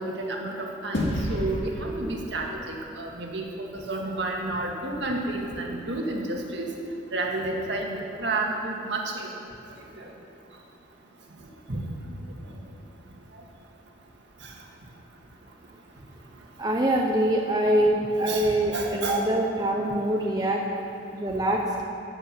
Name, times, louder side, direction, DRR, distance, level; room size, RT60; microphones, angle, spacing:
voice 1, 0.0-6.7 7.1-7.9 8.2-9.3 10.0-10.1 11.7-11.8 18.3-19.2, right 2 dB, 60° right, 0 dB, 1.8 m, -31 dB
sound 1, 0.9-3.6, left 1 dB, 70° left, 2.3 m, -31 dB
voice 2, 16.6-20.6 21.1-21.8, right 1 dB, 20° right, -1 dB, 0.7 m, -24 dB
15.5 x 8.0 x 6.0 m, 2.6 s
head